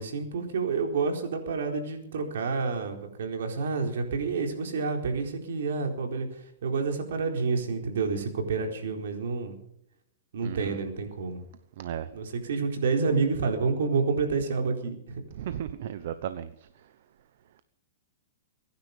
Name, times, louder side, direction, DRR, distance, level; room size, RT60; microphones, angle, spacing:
voice 1, 0.0-6.3 6.6-9.6 10.3-11.4 12.1-15.2, right 4 dB, 80° right, 4.2 m, -29 dB
voice 2, 10.4-10.8 11.8-12.1 15.3-16.5, right 10 dB, 60° right, 1.0 m, -35 dB
23.5 x 10.5 x 5.4 m
hypercardioid pair, 145°, 0 cm